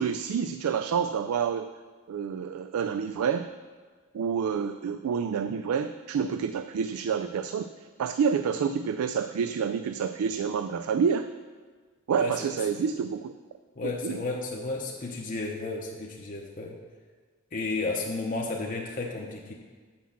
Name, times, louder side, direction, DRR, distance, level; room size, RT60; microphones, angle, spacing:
voice 1, 0.0-1.7 2.1-3.5 4.1-7.7 8.0-11.3 12.1-13.3 14.0-14.2, right 6 dB, 90° right, 10 dB, 0.3 m, -28 dB
voice 2, 13.8-16.8 17.5-19.5, left 3 dB, 40° left, -1 dB, 0.7 m, -33 dB
6.0 x 5.9 x 7.2 m, 1.5 s
head